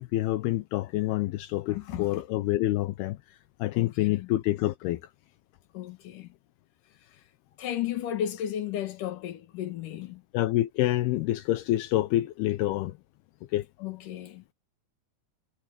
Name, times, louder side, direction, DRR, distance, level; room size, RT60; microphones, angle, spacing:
voice 1, 0.0-3.2 3.6-5.0 10.3-13.0 13.5-13.7, left 15 dB, 80° left, 2.5 m, -27 dB
voice 2, 1.7-2.2 3.7-4.3 5.7-6.3 7.6-10.2 13.8-14.5, left 10 dB, 55° left, 2.9 m, -34 dB
omnidirectional pair, 5.2 m